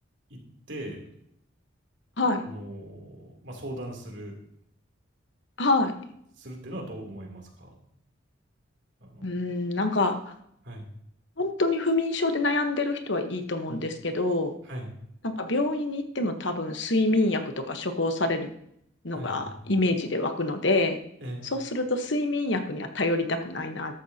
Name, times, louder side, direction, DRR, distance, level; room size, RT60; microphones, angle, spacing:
voice 1, 0.7-1.1 2.4-4.4 6.4-7.8 9.0-9.4 10.6-10.9 13.7-13.8 14.6-14.9 19.1-19.7 21.2-21.5, right 1 dB, 65° right, 0 dB, 3.1 m, -39 dB
voice 2, 5.6-5.9 9.2-10.2 11.4-14.5 15.2-18.5 19.0-21.0 21.5-23.9, left 2 dB, 60° left, 7 dB, 1.2 m, -26 dB
14.5 x 12.0 x 2.9 m, 0.72 s
head